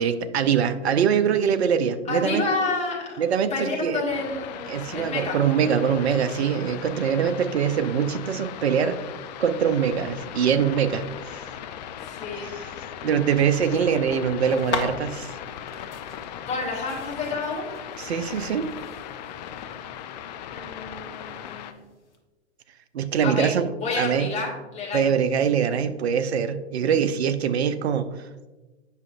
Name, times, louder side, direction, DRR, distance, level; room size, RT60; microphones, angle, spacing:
voice 1, 0.0-2.4 3.2-4.0 4.7-9.0 9.4-11.4 12.4-12.7 13.0-15.3 18.0-18.7 22.9-23.7 24.0-24.3 24.9-28.1, right 7 dB, 70° right, 11 dB, 0.6 m, -23 dB
voice 2, 2.1-3.2 3.5-5.4 12.0-12.5 16.5-17.8 20.5-21.8 23.2-23.6 23.8-25.1, left 3 dB, 20° left, -3 dB, 2.0 m, -29 dB
sound 1, 4.1-21.7, left 9 dB, 40° left, 0.4 m, -38 dB
sound 2, 14.5-22.2, left 4 dB, 85° left, 1.1 m, -38 dB
8.1 x 5.9 x 2.5 m, 1.2 s
figure-of-eight pair, 110°, 34 cm